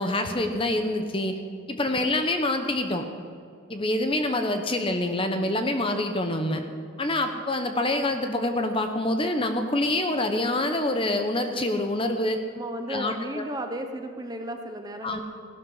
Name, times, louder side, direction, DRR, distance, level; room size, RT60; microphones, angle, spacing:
voice 1, 0.0-1.4 1.7-3.1 3.7-6.6 7.0-12.4 12.9-13.5 15.0-15.2, left 1 dB, 25° left, 6 dB, 0.9 m, -26 dB
voice 2, 12.6-15.2, right 1 dB, 20° right, 5 dB, 1.0 m, -34 dB
16.5 x 12.5 x 5.7 m, 2.3 s
head